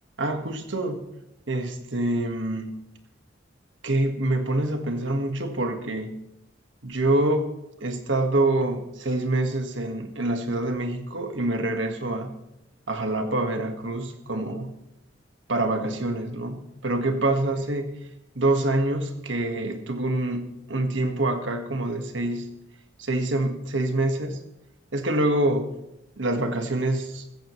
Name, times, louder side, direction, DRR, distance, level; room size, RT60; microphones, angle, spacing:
voice 1, 0.2-1.0 1.5-2.8 3.8-6.2 6.8-7.4 7.8-12.3 12.9-14.7 15.5-17.9 18.4-22.5 23.0-24.4 24.9-25.8 26.2-27.2, right 2 dB, 75° right, 5 dB, 1.7 m, -26 dB
15.5 x 14.5 x 3.2 m, 0.86 s
head